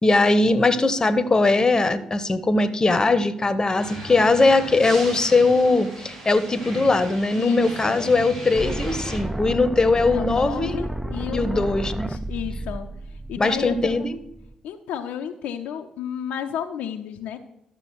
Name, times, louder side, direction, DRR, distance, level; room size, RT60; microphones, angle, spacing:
voice 1, 0.0-10.8 11.3-12.1 13.4-14.1, left 3 dB, 25° left, 14 dB, 0.9 m, -20 dB
sound 1, 3.8-9.2, equal, 80° right, 4.0 m, -37 dB
voice 2, 7.4-8.1 10.1-14.1 14.6-17.4, left 9 dB, 65° left, 5 dB, 0.6 m, -32 dB
sound 2, 8.6-14.5, right 1 dB, 5° right, 0.5 m, -32 dB
12.0 x 6.8 x 4.6 m, 0.81 s
figure-of-eight pair, 40°, 3 cm